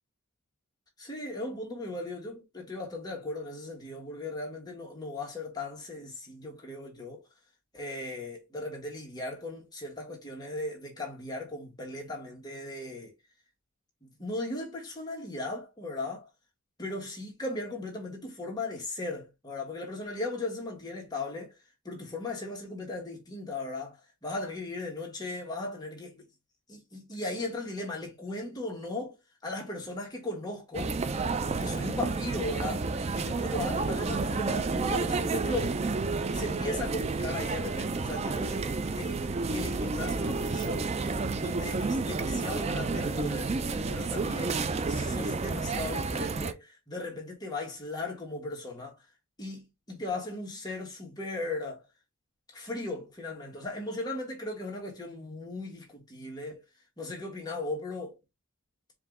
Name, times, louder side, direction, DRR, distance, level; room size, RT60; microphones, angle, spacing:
voice 1, 1.0-7.3 7.7-13.1 14.0-16.3 16.8-21.5 21.8-24.0 24.2-26.3 26.7-29.1 29.4-30.9 31.6-35.8 36.3-39.2 39.5-40.9 41.3-43.6 43.9-44.6 44.9-48.9 49.4-51.8 52.5-56.6 57.0-58.2, left 2 dB, 20° left, 1.6 m, -37 dB
sound 1, 30.7-46.5, right 3 dB, 30° right, 0.4 m, -30 dB
4.7 x 2.7 x 3.6 m
head